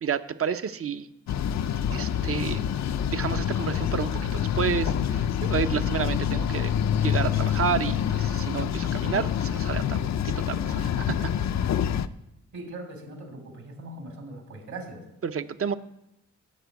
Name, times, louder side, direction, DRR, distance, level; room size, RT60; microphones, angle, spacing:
voice 1, 0.0-1.1 1.9-2.7 3.1-11.3 15.2-15.7, right 7 dB, 50° right, 11 dB, 0.7 m, -30 dB
sound 1, 1.3-12.1, left 9 dB, 65° left, 0.5 m, -26 dB
voice 2, 12.5-15.1, right 2 dB, 70° right, 4 dB, 3.0 m, -40 dB
11.5 x 6.1 x 9.3 m, 0.89 s
wide cardioid pair, 125°, 30 cm